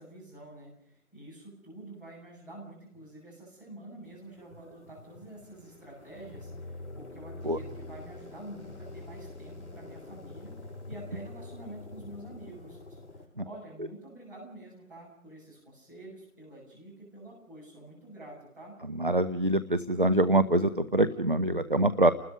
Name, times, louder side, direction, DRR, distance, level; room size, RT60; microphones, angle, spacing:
voice 1, 0.0-18.8, right 1 dB, 5° right, -11 dB, 6.4 m, -48 dB
sound 1, 4.0-13.3, left 2 dB, 50° left, 5.6 m, -45 dB
voice 2, 18.9-22.1, right 1 dB, 35° right, 12 dB, 0.8 m, -25 dB
29.5 x 20.5 x 5.3 m, 0.77 s
figure-of-eight pair, 165°, 44 cm